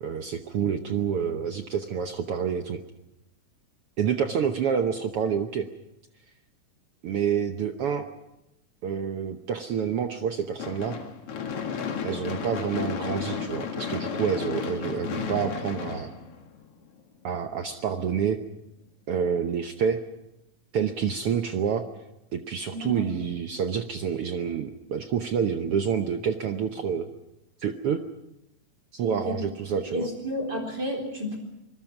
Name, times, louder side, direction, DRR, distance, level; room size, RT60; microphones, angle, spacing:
voice 1, 0.0-2.8 4.0-5.7 7.0-8.1 8.8-11.0 12.0-16.1 17.2-18.4 19.1-20.0 20.7-21.9 22.3-27.1 27.6-28.0 28.9-30.1, right 7 dB, 65° right, 6 dB, 1.4 m, -28 dB
Gunshot gunfire / Fireworks, 10.6-16.9, left 6 dB, 50° left, 2.5 m, -33 dB
voice 2, 22.7-23.0 29.1-29.4 29.7-31.4, left 1 dB, 30° right, 2 dB, 4.4 m, -32 dB
26.0 x 20.5 x 6.0 m, 0.89 s
omnidirectional pair, 3.7 m